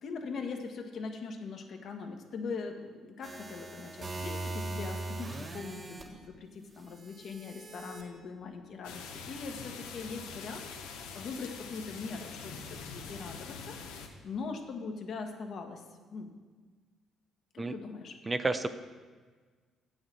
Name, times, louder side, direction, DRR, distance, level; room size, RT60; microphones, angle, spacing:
voice 1, 0.0-13.8 14.2-15.8 16.1-16.3 17.5-18.2, left 4 dB, 60° left, 4 dB, 1.2 m, -41 dB
sound 1, 3.2-6.0 7.0-8.0, right 2 dB, 45° right, 1.5 m, -40 dB
sound 2, 8.8-14.1, left 5 dB, 90° left, 0.9 m, -44 dB
voice 2, 18.3-18.7, right 3 dB, 25° right, 10 dB, 0.5 m, -30 dB
7.8 x 6.4 x 7.5 m, 1.5 s
supercardioid pair, 65°, 0 cm